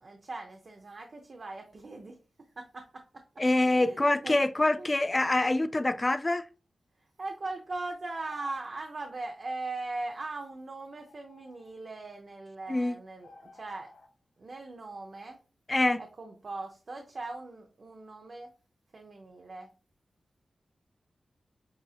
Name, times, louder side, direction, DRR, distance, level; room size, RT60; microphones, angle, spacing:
voice 1, 0.0-2.2 2.6-3.2 3.6-4.9 7.2-13.9 14.4-15.4 16.0-18.5 18.9-19.7, right 2 dB, 50° right, 0.7 m, -40 dB
voice 2, 3.4-6.4 12.7-13.0 15.7-16.0, left 2 dB, 25° left, 0.3 m, -25 dB
sound 1, 5.8-6.3 8.1-8.7 10.1-10.2 10.8-11.7 12.6-12.7 13.2-14.1, left 2 dB, 75° left, 1.0 m, -55 dB
7.8 x 2.6 x 2.4 m
wide cardioid pair, 105°, 0 cm